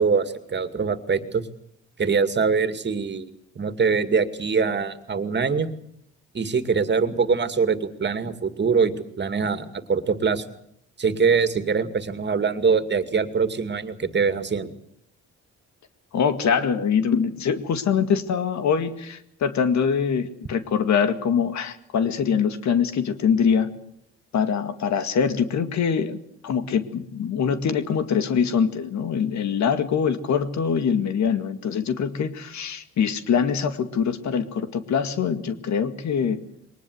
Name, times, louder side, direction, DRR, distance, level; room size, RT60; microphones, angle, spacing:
voice 1, 0.0-1.5 2.0-3.3 3.6-5.7 6.3-10.4 11.0-14.7, right 5 dB, 35° right, 10 dB, 2.4 m, -23 dB
voice 2, 16.1-23.7 24.3-36.4, left 7 dB, 65° left, 10 dB, 2.1 m, -23 dB
22.5 x 19.5 x 8.0 m, 0.69 s
cardioid pair, 90°, 30 cm